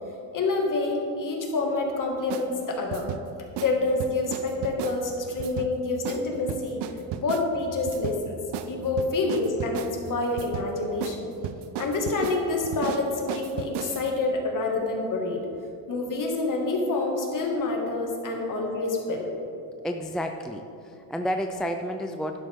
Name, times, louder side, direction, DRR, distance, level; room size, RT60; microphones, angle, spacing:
voice 1, 0.3-3.0 3.6-6.8 7.2-8.4 8.7-11.3 11.8-15.4 15.9-19.3, left 3 dB, 45° left, 0 dB, 2.2 m, -27 dB
sound 1, 2.3-2.5 2.9-3.2 3.6-3.7 4.0-5.0 5.4-5.7 6.1-6.2 6.5-7.5 7.9-8.2 8.5-8.7 9.0-9.9 10.4-10.7 11.0-11.2 11.4-14.1, right 9 dB, 65° right, 0.7 m, -34 dB
voice 2, 19.8-22.4, equal, ahead, 5 dB, 0.4 m, -31 dB
11.5 x 11.0 x 3.7 m, 2.7 s
cardioid pair, 100°, 44 cm